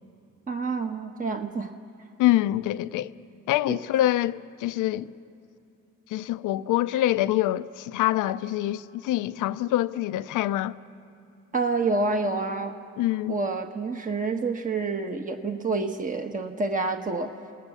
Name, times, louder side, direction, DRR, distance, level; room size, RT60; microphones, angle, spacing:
voice 1, 0.5-1.7 3.7-3.8 11.5-12.8 13.3-17.3, right 3 dB, 25° right, 1.3 m, -28 dB
voice 2, 2.2-3.1 3.5-5.1 6.1-10.7 13.0-13.4, left 14 dB, 85° left, 0.6 m, -25 dB
28.0 x 19.0 x 7.0 m
cardioid pair, 90°, 30 cm